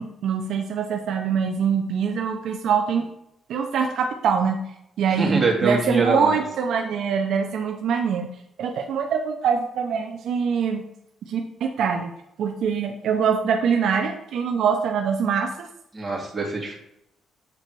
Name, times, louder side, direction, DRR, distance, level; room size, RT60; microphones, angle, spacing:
voice 1, 0.0-3.1 3.5-4.6 5.0-8.3 8.6-10.8 11.3-12.1 12.4-15.7, right 6 dB, 75° right, 4 dB, 0.7 m, -24 dB
voice 2, 5.2-6.4 15.9-16.8, right 3 dB, 25° right, -2 dB, 2.4 m, -23 dB
8.4 x 4.0 x 4.7 m, 0.80 s
cardioid pair, 90°, 0 cm